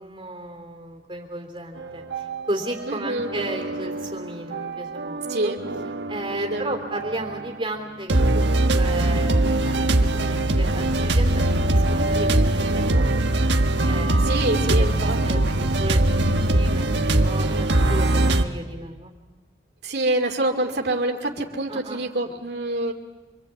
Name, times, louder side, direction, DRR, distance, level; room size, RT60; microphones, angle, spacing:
voice 1, 0.0-5.5 6.1-11.4 11.7-13.3 13.8-19.1 21.7-22.0, right 1 dB, 25° right, 3 dB, 3.4 m, -34 dB
sound 1, 1.8-2.9 3.2-7.5 8.1-18.4, right 1 dB, 80° right, 1.3 m, -22 dB
voice 2, 2.9-3.3 5.3-5.6 6.3-6.8 14.2-15.2 19.8-22.9, right 1 dB, 65° right, 2 dB, 2.3 m, -26 dB
26.0 x 24.0 x 8.4 m, 1.2 s
head